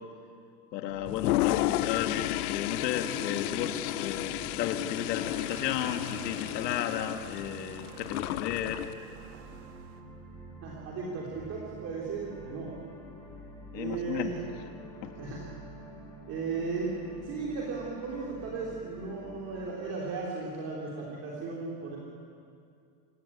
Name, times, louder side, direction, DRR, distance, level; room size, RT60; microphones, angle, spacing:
voice 1, 0.7-8.8 13.7-14.3, left 9 dB, 85° left, 5 dB, 2.3 m, -33 dB
sound 1, 0.9-19.8, equal, 5° left, 2.7 m, -48 dB
Toilet flush, 1.1-8.9, left 17 dB, 65° left, 0.5 m, -32 dB
sound 2, 5.0-10.0, right 7 dB, 60° right, 2.2 m, -52 dB
voice 2, 10.6-12.7 13.7-14.3 15.2-15.4 16.3-16.9 17.2-22.0, right 4 dB, 30° right, -4 dB, 3.3 m, -36 dB
26.5 x 16.5 x 8.7 m, 2.4 s
supercardioid pair, 170°, 48 cm